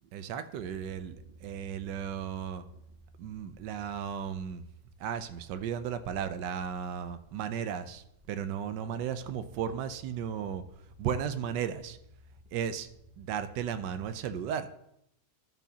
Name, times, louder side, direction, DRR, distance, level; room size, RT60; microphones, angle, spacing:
voice 1, 0.1-2.6 3.2-4.7 5.0-10.6 11.0-12.0 12.5-12.9 13.2-14.7, right 8 dB, 80° right, 11 dB, 1.2 m, -35 dB
sound 1, 0.6-14.4, right 1 dB, 30° right, 0.8 m, -56 dB
12.5 x 6.1 x 2.8 m, 0.77 s
omnidirectional pair, 1.9 m